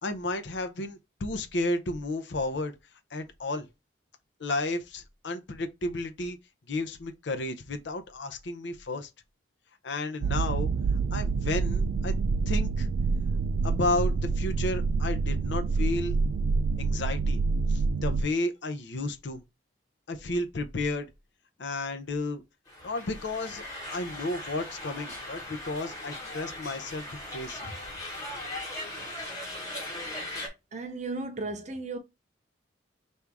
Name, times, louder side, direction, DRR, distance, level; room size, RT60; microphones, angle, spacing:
voice 1, 0.0-2.7 3.1-3.7 4.4-6.4 6.7-9.1 9.8-10.7 11.1-12.1 12.5-12.9 13.6-16.1 16.8-17.4 17.7-19.4 20.1-21.1 21.6-22.4 22.8-23.6 23.9-27.1 27.3-27.7, left 2 dB, 65° left, 0.6 m, -32 dB
sound 1, 10.2-18.2, right 4 dB, 90° right, 0.3 m, -27 dB
sound 2, 22.7-30.5, left 1 dB, 20° left, 1.3 m, -39 dB
voice 2, 30.7-32.0, right 3 dB, 35° right, 0.6 m, -35 dB
3.4 x 2.7 x 4.7 m
head